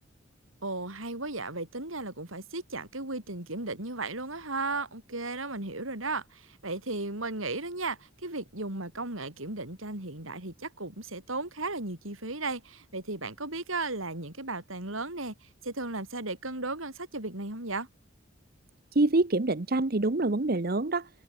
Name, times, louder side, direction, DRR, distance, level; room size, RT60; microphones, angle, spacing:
voice 1, 0.6-17.9, right 3 dB, 75° right, 5.2 m, -35 dB
voice 2, 18.9-21.1, right 2 dB, 45° right, 0.9 m, -26 dB
head